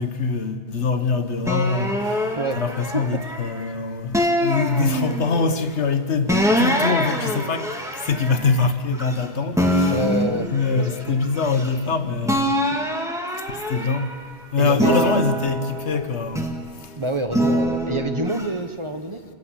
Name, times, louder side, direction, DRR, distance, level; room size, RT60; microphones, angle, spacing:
voice 1, 0.0-10.0 10.5-12.6 13.5-14.1 14.5-16.4 16.8-17.0, left 4 dB, 85° left, 1.5 m, -24 dB
sound 1, 1.4-3.6 4.1-5.5 6.3-9.2 9.6-11.9 12.2-14.3 14.7-16.7 17.3-18.5, equal, 5° right, 1.8 m, -24 dB
voice 2, 2.3-2.6 2.9-3.2 9.9-11.2 14.6-15.1 17.0-19.2, right 2 dB, 30° right, 1.0 m, -27 dB
27.5 x 15.0 x 8.3 m
omnidirectional pair, 1.1 m